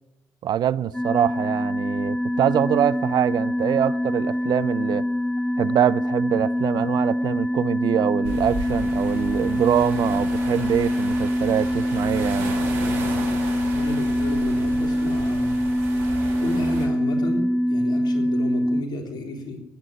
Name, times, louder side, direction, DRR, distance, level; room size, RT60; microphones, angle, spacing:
voice 1, 0.4-5.1 5.6-12.5, right 10 dB, 60° right, 0.5 m, -24 dB
sound 1, 0.9-18.8, equal, 5° left, 0.6 m, -24 dB
sound 2, 8.2-16.9, right 3 dB, 85° right, 3.2 m, -34 dB
voice 2, 13.7-15.7 16.4-19.6, left 2 dB, 65° left, 3.6 m, -33 dB
16.0 x 9.8 x 9.1 m
hypercardioid pair, 50°, 8 cm